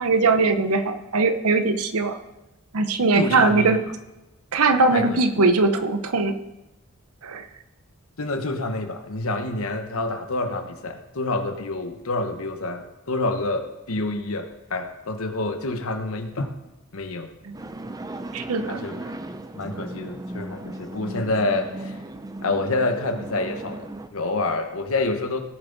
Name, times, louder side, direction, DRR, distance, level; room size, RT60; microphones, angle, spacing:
voice 1, 0.0-2.2 2.7-3.8 4.5-6.4 7.2-7.4 17.4-17.5 18.3-18.8, right 3 dB, 90° right, 9 dB, 0.8 m, -20 dB
voice 2, 3.1-3.8 4.9-5.2 8.2-16.5 16.9-17.3 18.7-19.1 19.5-22.0 22.4-25.4, left 2 dB, 75° left, 6 dB, 1.1 m, -27 dB
sound 1, 17.5-24.1, right 1 dB, 15° right, 0.5 m, -36 dB
17.5 x 7.1 x 4.0 m, 1.0 s
head